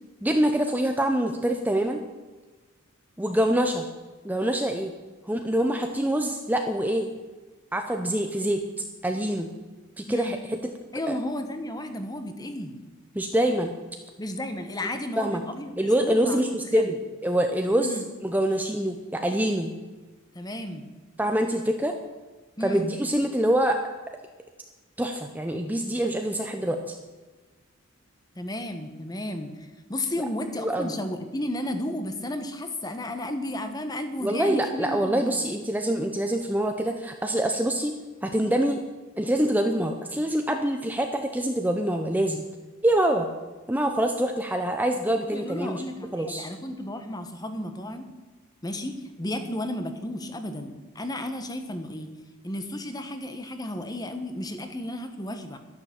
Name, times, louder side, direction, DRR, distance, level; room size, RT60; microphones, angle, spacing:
voice 1, 0.2-2.0 3.2-3.8 4.2-4.9 5.3-7.1 7.7-8.6 9.0-9.5 10.0-10.6 11.1-11.2 13.1-13.7 15.2-15.4 15.8-17.0 17.2-19.7 21.2-21.9 22.6-23.8 25.0-27.0 30.6-30.9 34.2-37.9 38.2-38.8 39.2-42.4 42.8-43.3 43.7-45.8 46.1-46.5, right 1 dB, 10° right, 4 dB, 0.7 m, -25 dB
voice 2, 10.9-12.8 14.2-17.0 17.8-18.0 20.3-20.9 22.6-22.9 28.3-35.4 45.3-48.1 48.6-52.2 52.4-55.6, left 1 dB, 20° left, 7 dB, 1.2 m, -33 dB
12.0 x 10.5 x 7.3 m, 1.3 s
head